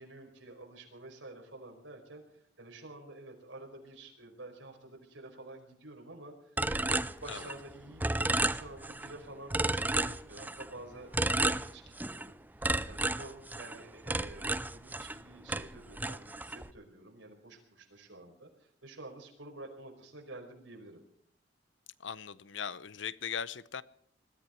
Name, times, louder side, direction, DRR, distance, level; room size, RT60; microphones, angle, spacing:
voice 1, 0.0-21.0, right 2 dB, 90° right, 2 dB, 4.9 m, -50 dB
sound 1, 6.6-7.7 8.0-9.1 9.5-10.7 11.1-12.3 12.6-15.2 15.5-16.7, right 2 dB, 10° right, 0.5 m, -32 dB
voice 2, 22.0-23.8, left 7 dB, 75° left, 17 dB, 0.7 m, -39 dB
21.5 x 14.0 x 4.5 m, 0.68 s
head